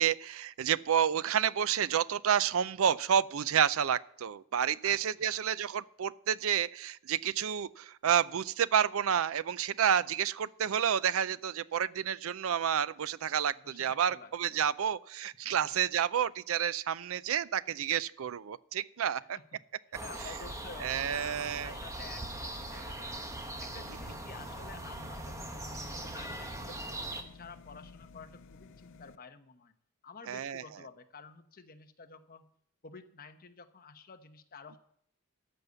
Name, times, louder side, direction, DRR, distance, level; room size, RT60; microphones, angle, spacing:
voice 1, 0.0-19.4 20.8-21.7 30.3-30.6, right 8 dB, 65° right, 18 dB, 0.4 m, -30 dB
voice 2, 4.8-5.4 13.5-14.6 15.6-15.7 19.2-19.6 20.0-23.2 23.6-29.7 30.0-32.5 32.8-34.8, left 4 dB, 40° left, 7 dB, 1.0 m, -51 dB
sound 1, 19.9-27.2, right 1 dB, 15° right, 1.1 m, -41 dB
sound 2, 23.8-29.2, left 4 dB, 60° left, 0.5 m, -54 dB
13.5 x 5.4 x 8.2 m, 0.67 s
head